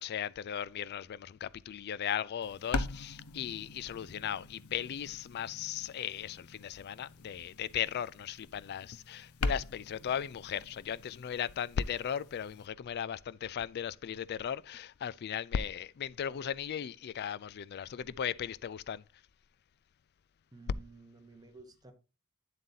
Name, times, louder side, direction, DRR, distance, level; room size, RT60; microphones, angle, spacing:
voice 1, 0.0-19.0, left 8 dB, 50° left, 0.3 m, -37 dB
sound 1, 2.4-12.7, left 3 dB, 90° left, 0.7 m, -42 dB
voice 2, 20.5-21.9, right 3 dB, 20° right, 1.1 m, -53 dB
8.3 x 7.5 x 2.8 m
head